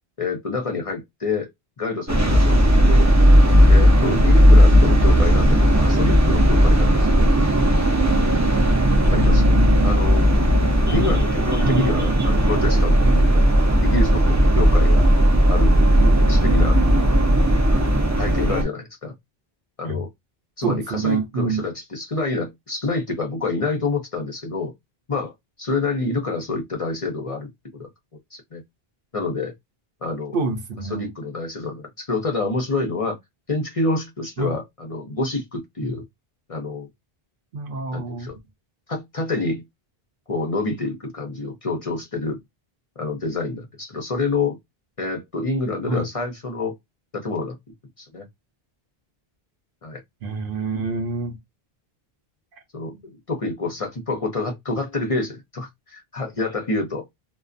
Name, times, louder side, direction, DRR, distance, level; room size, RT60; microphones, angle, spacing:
voice 1, 0.2-1.5 1.8-2.6 2.9-3.1 3.7-7.3 9.1-9.6 9.8-10.3 10.9-15.1 15.5-16.8 18.2-19.1 19.8-20.1 20.6-24.7 25.1-25.3 25.6-27.9 28.3-28.6 29.1-29.5 30.0-30.4 30.9-33.2 33.5-36.0 36.5-36.9 37.9-38.4 38.9-39.6 40.3-42.4 43.0-44.6 45.0-46.8 47.1-47.6 48.0-48.3 49.8-50.0 52.7-57.1, left 3 dB, 40° left, 0.6 m, -27 dB
sound 1, 2.1-18.6, equal, 25° right, 0.4 m, -16 dB
voice 2, 9.1-10.1 10.9-11.0 11.6-11.9 13.0-13.3 19.8-20.0 20.6-21.6 30.3-31.1 34.4-34.5 35.8-36.0 37.5-38.3 45.9-46.1 50.2-51.4, right 3 dB, 65° right, 0.8 m, -27 dB
2.4 x 2.2 x 2.4 m
omnidirectional pair, 1.0 m